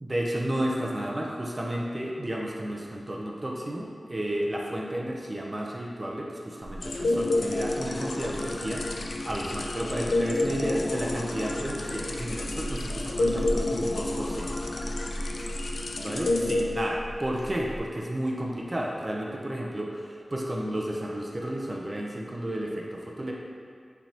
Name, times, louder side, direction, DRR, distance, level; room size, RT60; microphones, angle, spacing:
voice 1, 0.0-14.5 16.0-23.3, right 1 dB, 35° right, -2 dB, 0.6 m, -32 dB
sound 1, 6.6-17.8, equal, 20° left, 1.0 m, -39 dB
sound 2, 6.8-17.3, left 2 dB, 90° left, 0.3 m, -30 dB
5.4 x 3.4 x 2.8 m, 2.3 s
wide cardioid pair, 60°, 0 cm